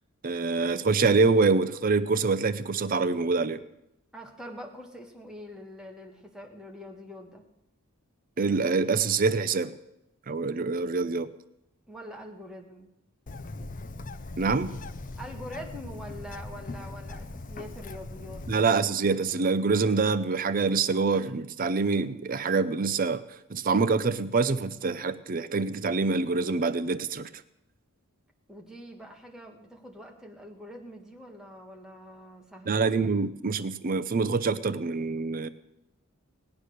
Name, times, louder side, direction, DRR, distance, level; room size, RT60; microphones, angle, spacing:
voice 1, 0.2-3.6 8.4-9.7 10.3-11.3 14.4-14.7 18.5-23.2 23.5-27.3 32.7-35.5, right 4 dB, 40° right, 0.5 m, -25 dB
voice 2, 4.1-7.4 11.9-12.9 15.2-18.5 28.5-32.8, equal, 5° right, 1.8 m, -44 dB
Bird, 13.3-18.5, left 2 dB, 35° left, 0.6 m, -40 dB
18.0 x 9.5 x 6.5 m
head